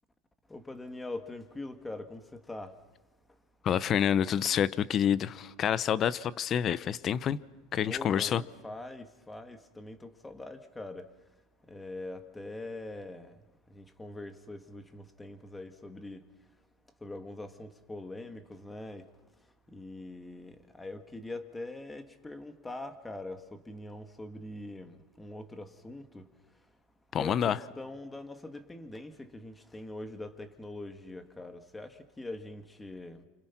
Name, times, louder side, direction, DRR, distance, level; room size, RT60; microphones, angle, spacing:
voice 1, 0.5-2.8 7.8-11.0 11.7-13.4 13.7-16.2 17.0-19.1 19.7-26.3 27.2-33.2, left 2 dB, 10° left, 1.9 m, -43 dB
voice 2, 3.6-7.4 7.7-8.4 27.1-27.6, left 9 dB, 35° left, 0.8 m, -28 dB
29.0 x 26.5 x 6.0 m
supercardioid pair, 120°, 0 cm